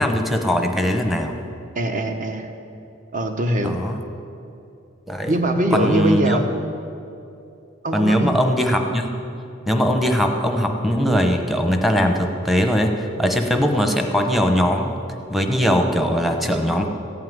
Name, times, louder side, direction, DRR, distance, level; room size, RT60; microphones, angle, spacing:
voice 1, 0.0-1.4 3.6-4.0 5.1-5.3 5.7-6.4 7.9-9.1 9.7-14.9 15.3-16.9, equal, ahead, 4 dB, 0.9 m, -20 dB
voice 2, 1.7-2.5 3.1-3.8 5.3-6.5 7.8-8.3, right 1 dB, 40° right, 5 dB, 1.1 m, -22 dB
15.0 x 5.7 x 9.5 m, 2.7 s
head